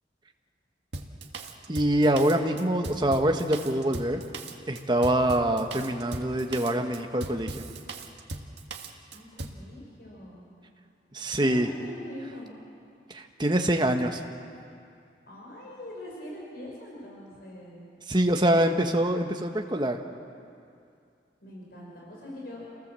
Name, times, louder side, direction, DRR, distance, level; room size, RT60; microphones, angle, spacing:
Drum kit, 0.9-9.6, right 2 dB, 75° right, 1.7 m, -39 dB
voice 1, 1.7-4.2 4.7-7.7 11.1-11.7 13.1-14.2 18.1-20.0, right 1 dB, 25° right, 4 dB, 1.3 m, -25 dB
voice 2, 9.1-10.4 11.4-12.5 15.3-17.9 21.4-22.7, left 1 dB, 60° left, -3 dB, 5.2 m, -42 dB
28.0 x 18.5 x 7.6 m, 2.4 s
head